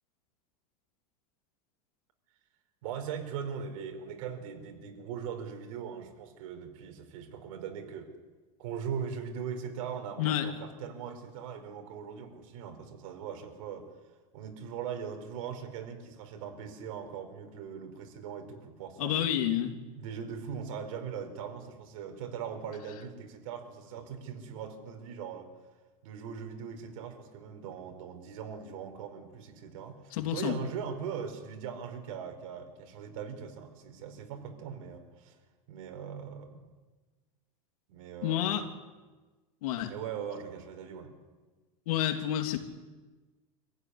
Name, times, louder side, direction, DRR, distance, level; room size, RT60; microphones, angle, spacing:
voice 1, 2.8-8.1 8.6-13.9 14.3-19.3 20.0-25.5 26.0-35.4 35.7-36.7 37.9-38.7 39.9-41.1, right 7 dB, 65° right, 5 dB, 4.9 m, -40 dB
voice 2, 19.0-19.8 30.1-30.6 38.2-38.6 39.6-39.9 41.9-42.6, left 11 dB, 70° left, 6 dB, 3.0 m, -29 dB
26.0 x 15.5 x 10.0 m, 1.3 s
supercardioid pair, 145°, 19 cm